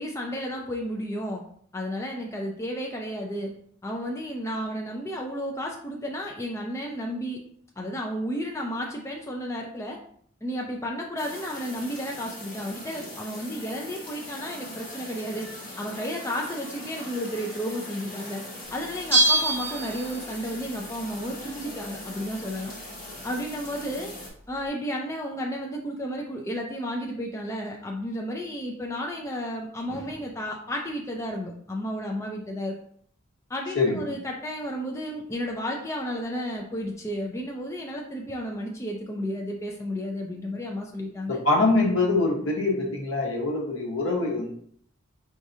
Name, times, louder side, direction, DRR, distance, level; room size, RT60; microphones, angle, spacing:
voice 1, 0.0-1.4 1.7-3.5 3.8-7.4 7.8-10.0 10.4-15.5 15.8-18.4 18.7-22.7 23.2-24.1 24.5-32.8 33.5-41.4, equal, 15° left, 0 dB, 0.4 m, -32 dB
sound 1, 11.2-24.3, left 1 dB, 40° left, 1.8 m, -41 dB
Bell, 19.1-20.5 20.8-20.9, right 2 dB, 10° right, 1.5 m, -24 dB
voice 2, 41.3-44.5, left 3 dB, 70° left, 0 dB, 1.1 m, -24 dB
4.8 x 3.7 x 2.7 m, 0.62 s
head